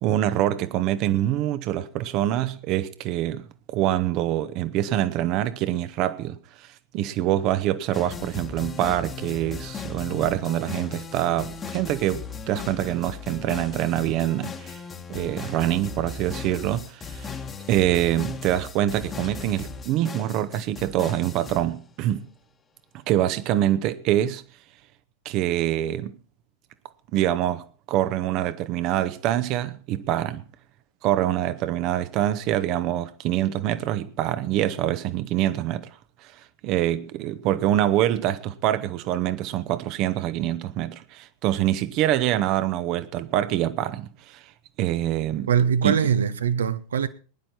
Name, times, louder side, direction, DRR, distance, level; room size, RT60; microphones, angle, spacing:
voice 1, 0.0-6.7 6.9-14.8 15.1-17.3 17.7-22.3 23.1-24.4 25.2-26.2 27.1-30.4 31.0-35.9 36.2-36.3 36.6-44.4 44.8-45.5 45.8-46.0, right 13 dB, 40° right, 1.0 m, -25 dB
sound 1, 7.9-21.9, left 5 dB, 20° left, 1.4 m, -37 dB
voice 2, 45.5-47.1, right 7 dB, 65° right, 1.0 m, -22 dB
20.5 x 10.5 x 4.3 m
figure-of-eight pair, 90°, 0 cm